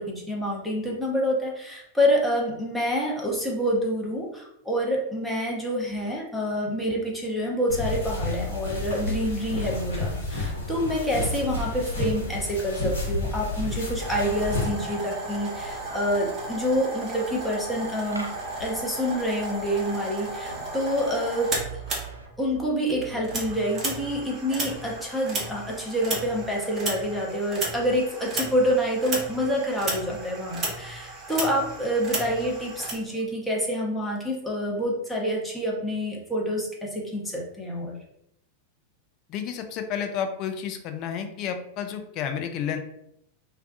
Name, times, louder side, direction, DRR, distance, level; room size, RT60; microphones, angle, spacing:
voice 1, 0.0-18.3 18.6-21.5 22.4-38.0, equal, 5° left, -4 dB, 0.7 m, -27 dB
sound 1, 7.7-14.7, left 2 dB, 60° left, 0.9 m, -30 dB
sound 2, 9.6-22.3, equal, 85° right, 0.3 m, -44 dB
sound 3, 14.0-22.6 22.9-32.9, right 2 dB, 25° right, 0.8 m, -34 dB
voice 2, 39.3-42.8, left 8 dB, 40° left, 6 dB, 0.3 m, -31 dB
2.2 x 2.2 x 2.5 m, 0.78 s
figure-of-eight pair, 90°, 0 cm